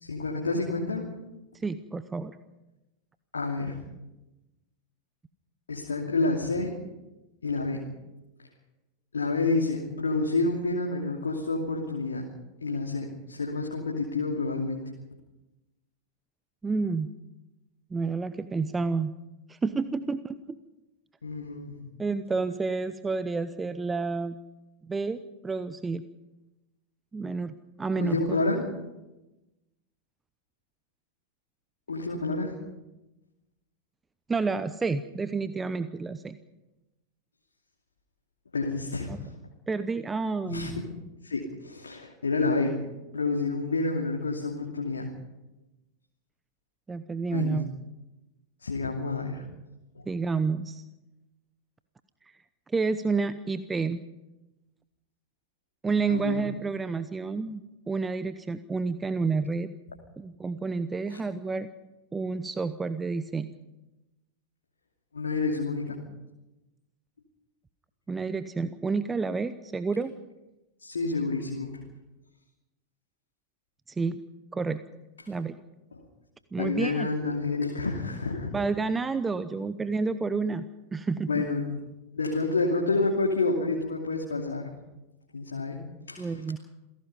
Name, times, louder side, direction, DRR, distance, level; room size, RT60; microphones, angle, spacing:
voice 1, 0.0-1.1 3.3-3.8 5.7-6.8 7.4-7.9 9.1-12.3 12.6-14.8 21.2-21.8 28.0-28.7 31.9-32.6 38.5-39.1 40.5-40.9 41.2-45.1 47.3-47.6 48.6-49.4 50.0-50.1 56.1-56.4 61.1-61.2 65.1-66.0 70.8-71.7 76.6-78.5 81.3-81.6 82.1-84.7 85.3-85.8 86.1-86.3, left 3 dB, 75° left, 0 dB, 2.6 m, -29 dB
voice 2, 1.5-2.4 16.6-17.1 17.9-19.1 19.5-20.6 22.0-24.4 24.8-26.0 27.1-28.4 34.3-36.4 39.1-39.2 39.7-40.8 46.9-47.7 50.1-50.8 52.7-54.0 55.8-57.6 57.9-59.7 60.2-61.7 62.1-63.5 68.1-70.1 73.9-74.2 74.5-74.8 75.3-75.5 76.5-77.1 78.5-80.6 80.9-81.4 86.2-86.6, right 4 dB, 15° right, 13 dB, 0.8 m, -29 dB
28.0 x 17.0 x 5.5 m, 1.0 s
figure-of-eight pair, 90°, 0 cm